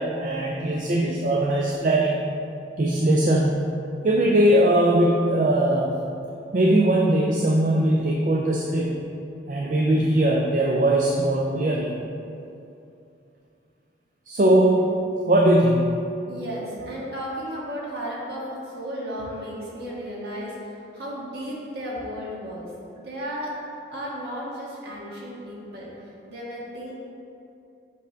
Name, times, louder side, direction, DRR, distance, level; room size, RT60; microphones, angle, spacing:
voice 1, 0.0-2.2 2.8-3.6 4.0-6.0 6.5-9.0 9.5-11.9 14.3-15.0 15.3-16.1, right 1 dB, 45° right, -2 dB, 0.4 m, -20 dB
voice 2, 16.3-23.5 23.9-26.9, equal, 60° right, -5 dB, 1.5 m, -34 dB
6.8 x 3.4 x 5.1 m, 2.7 s
head